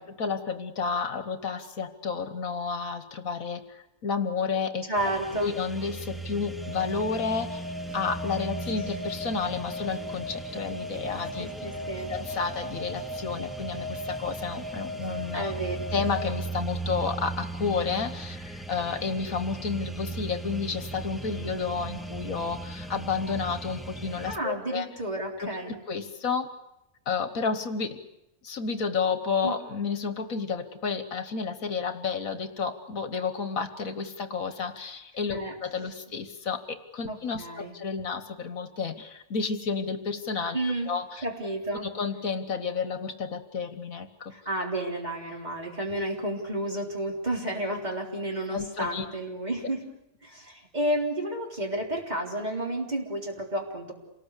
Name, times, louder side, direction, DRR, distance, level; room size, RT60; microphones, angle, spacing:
voice 1, 0.0-4.9 5.4-7.7 7.9-11.5 12.1-15.5 15.9-24.9 25.4-26.5 27.0-28.0 28.4-40.6 40.9-41.2 41.8-44.3 48.5-49.1, left 5 dB, 65° left, 9 dB, 1.7 m, -31 dB
voice 2, 4.9-5.5 11.4-12.1 15.3-15.8 24.3-25.8 29.4-29.5 35.3-35.5 37.1-37.7 40.5-40.9 41.2-41.9 44.3-49.9 50.2-53.9, right 1 dB, 30° right, 0 dB, 3.8 m, -31 dB
sound 1, 5.0-24.4, right 3 dB, ahead, 0.8 m, -38 dB
sound 2, 6.6-16.3, left 1 dB, 90° right, 8.6 m, -38 dB
27.5 x 19.0 x 8.3 m, 0.90 s
omnidirectional pair, 1.5 m